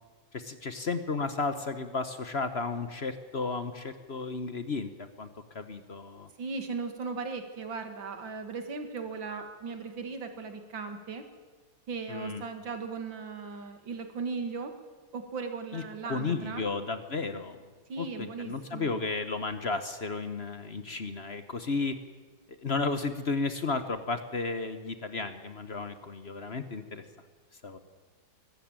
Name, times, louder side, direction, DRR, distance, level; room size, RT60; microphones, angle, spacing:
voice 1, 0.3-4.9 5.2-5.3 5.5-6.3 12.1-12.4 15.7-17.6 18.0-21.9 22.5-27.0 27.6-27.8, left 4 dB, 40° left, 10 dB, 1.1 m, -33 dB
voice 2, 6.4-11.3 11.9-14.7 15.1-16.7 17.9-19.0, right 4 dB, 85° right, 7 dB, 2.7 m, -37 dB
22.5 x 13.5 x 8.9 m, 1.4 s
omnidirectional pair, 2.0 m